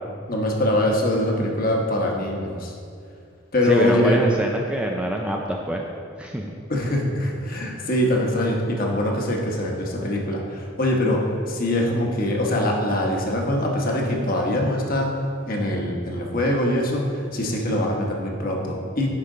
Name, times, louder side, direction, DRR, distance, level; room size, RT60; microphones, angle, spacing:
voice 1, 0.3-2.7 3.5-4.2 6.7-11.2 11.5-15.2 15.5-19.1, left 1 dB, 45° left, 0 dB, 1.0 m, -23 dB
voice 2, 3.7-5.8 6.2-6.5, right 1 dB, 5° right, 1 dB, 0.3 m, -24 dB
9.7 x 5.0 x 3.8 m, 2.3 s
head